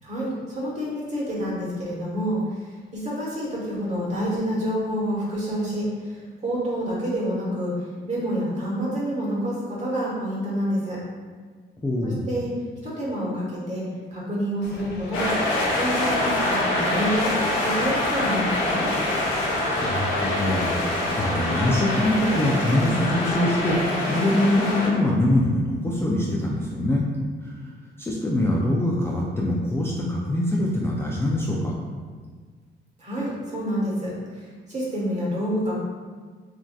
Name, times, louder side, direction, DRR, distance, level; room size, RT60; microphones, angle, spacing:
voice 1, 0.0-11.0 12.0-12.5 12.8-15.3 15.7-17.3 17.6-18.9 33.0-35.8, equal, 35° right, -5 dB, 1.2 m, -28 dB
voice 2, 11.8-12.3 19.8-27.1 27.4-27.6 28.0-31.7, left 1 dB, 10° left, -4 dB, 0.3 m, -24 dB
sound 1, 14.6-23.8, left 1 dB, 60° left, 0.6 m, -40 dB
sound 2, 15.1-24.9, left 1 dB, 85° left, 0.8 m, -25 dB
3.5 x 2.5 x 2.3 m, 1.5 s
cardioid pair, 90°, 20 cm